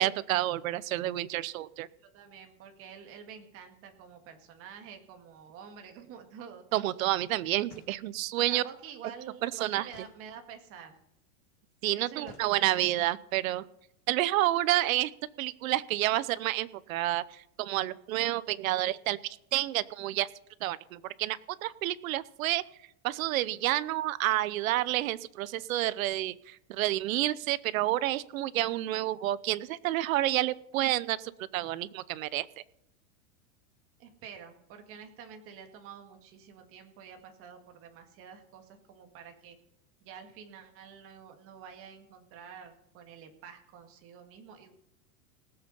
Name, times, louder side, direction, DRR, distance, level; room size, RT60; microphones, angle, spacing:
voice 1, 0.0-1.9 6.7-8.6 9.4-9.9 11.8-13.7 14.1-15.1 15.4-17.2 17.6-20.3 20.6-22.6 23.0-32.5, right 15 dB, 65° right, 18 dB, 0.8 m, -29 dB
voice 2, 2.0-6.6 8.4-11.0 11.9-12.9 34.0-39.6 40.0-44.7, right 7 dB, 30° right, 5 dB, 2.0 m, -48 dB
sound 1, 7.6-8.4 9.9-10.8 12.2-13.1, left 6 dB, 50° left, 2.5 m, -56 dB
18.5 x 8.0 x 5.5 m, 0.78 s
supercardioid pair, 170°, 44 cm